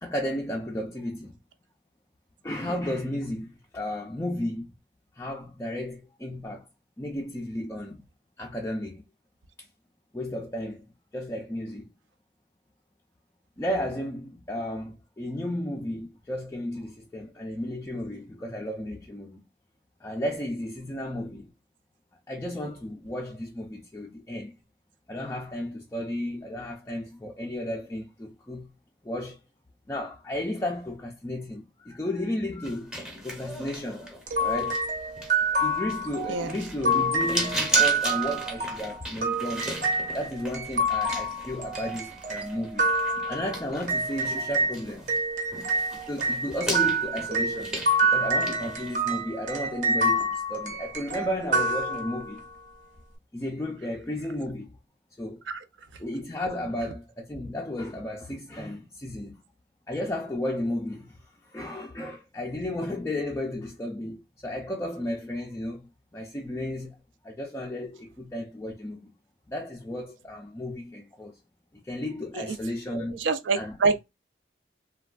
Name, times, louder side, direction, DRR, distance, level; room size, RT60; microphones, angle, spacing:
voice 1, 0.0-1.4 2.4-4.7 5.1-6.7 7.0-8.0 8.4-9.0 9.6-9.7 10.1-11.9 13.6-19.4 20.0-21.5 22.3-24.5 25.1-28.7 29.0-29.4 29.9-34.9 35.6-42.9 43.3-45.2 46.1-52.4 53.3-54.7 55.2-55.4 56.0-59.3 59.9-69.1 69.5-71.4 71.7-73.3 73.5-73.8, left 1 dB, 15° left, 0.3 m, -33 dB
sound 1, 32.6-45.2 45.5-49.0, equal, 5° right, 0.7 m, -36 dB
sound 2, 34.3-44.7 45.1-52.4, right 2 dB, 40° right, 0.7 m, -27 dB
voice 2, 72.9-74.0, right 4 dB, 85° right, 0.5 m, -26 dB
3.2 x 2.2 x 2.2 m
head